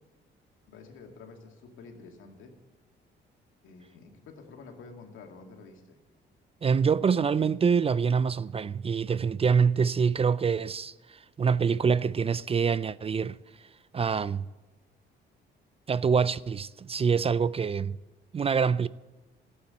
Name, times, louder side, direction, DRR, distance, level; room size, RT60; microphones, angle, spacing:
voice 1, 0.7-2.5 3.6-6.0, left 4 dB, 80° left, 2.3 m, -49 dB
voice 2, 6.6-13.4 13.9-14.5 15.9-18.0 18.3-18.9, right 6 dB, 30° right, 0.4 m, -25 dB
13.0 x 8.8 x 8.2 m
cardioid pair, 90°, 20 cm